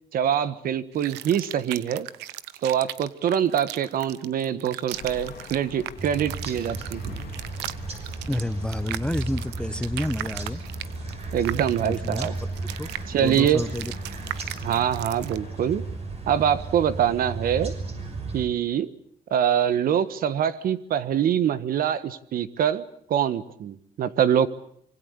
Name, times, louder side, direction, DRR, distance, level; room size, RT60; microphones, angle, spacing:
voice 1, 0.1-2.1 2.6-7.1 11.3-12.3 13.1-13.6 14.6-15.8 16.3-17.7 18.3-18.9 19.3-24.5, right 9 dB, 60° right, 14 dB, 1.5 m, -24 dB
sound 1, 0.9-15.4, right 15 dB, 90° right, 1.0 m, -38 dB
sound 2, 4.9-16.1, left 10 dB, 65° left, 2.5 m, -47 dB
sound 3, 6.0-18.5, right 3 dB, 40° right, 6.7 m, -35 dB
voice 2, 8.3-10.6 11.8-12.3 12.8-12.9 13.2-13.9, left 1 dB, 5° left, 13 dB, 1.0 m, -29 dB
25.5 x 23.5 x 8.3 m, 0.67 s
cardioid pair, 110°, 17 cm